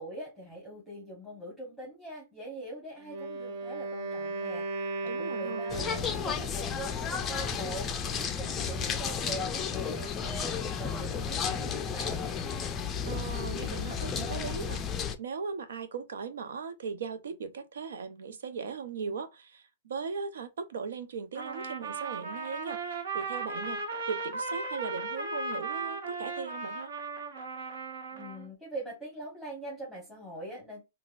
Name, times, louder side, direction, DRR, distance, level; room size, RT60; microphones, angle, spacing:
voice 1, 0.0-12.2 28.1-30.8, right 1 dB, 5° right, 1.2 m, -43 dB
Wind instrument woodwind instrument, 3.0-6.5, right 3 dB, 45° right, 0.7 m, -36 dB
voice 2, 5.1-5.7 13.0-14.8 15.2-26.9, right 5 dB, 80° right, 0.7 m, -38 dB
sound 1, 5.7-15.2, left 6 dB, 15° left, 0.4 m, -33 dB
Trumpet, 21.3-28.5, right 3 dB, 60° right, 1.2 m, -36 dB
4.0 x 2.2 x 2.4 m
hypercardioid pair, 155°, 0 cm